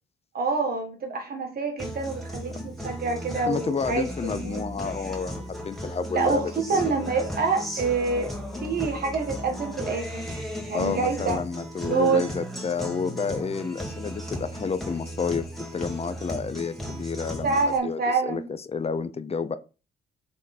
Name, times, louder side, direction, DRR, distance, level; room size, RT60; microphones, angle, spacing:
voice 1, 0.3-4.6 6.1-8.3 8.6-10.3 10.7-11.4 11.8-12.2 17.4-18.5, right 4 dB, 50° right, 3 dB, 1.6 m, -26 dB
Guitar, 1.8-17.8, equal, ahead, 2.1 m, -36 dB
voice 2, 3.5-6.4 6.7-6.9 10.7-19.6, left 5 dB, 30° left, 13 dB, 0.7 m, -30 dB
7.6 x 3.8 x 4.3 m, 0.34 s
cardioid pair, 90°, 20 cm